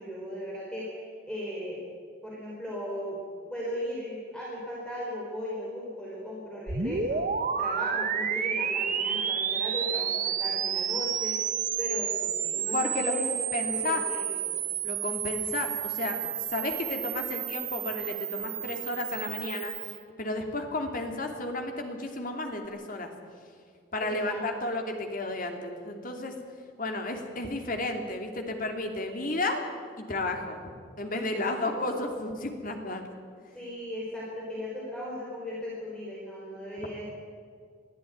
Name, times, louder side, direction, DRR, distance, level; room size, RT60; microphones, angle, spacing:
voice 1, 0.0-1.8 2.2-3.2 3.5-7.3 7.6-14.6 24.0-24.4 31.1-31.9 33.5-37.0, equal, 5° left, -5 dB, 4.6 m, -37 dB
sound 1, 6.7-20.0, right 8 dB, 45° right, 1.3 m, -31 dB
voice 2, 12.7-13.1 13.5-14.0 14.8-16.2 16.5-19.7 20.2-23.1 23.9-26.4 26.8-29.6 30.0-30.6 31.0-33.0, left 2 dB, 45° left, 4 dB, 2.8 m, -32 dB
22.0 x 14.0 x 9.4 m, 2.1 s
head